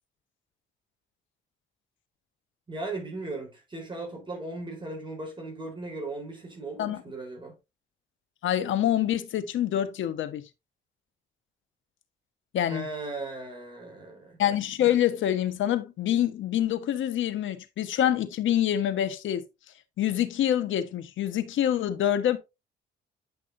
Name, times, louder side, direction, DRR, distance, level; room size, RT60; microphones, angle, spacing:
voice 1, 2.7-7.6 12.7-14.4, right 2 dB, 25° right, 4.2 m, -37 dB
voice 2, 8.4-10.4 12.5-12.8 14.4-19.5 20.0-22.4, left 11 dB, 75° left, 1.4 m, -26 dB
10.5 x 6.1 x 2.7 m
cardioid pair, 90°, 20 cm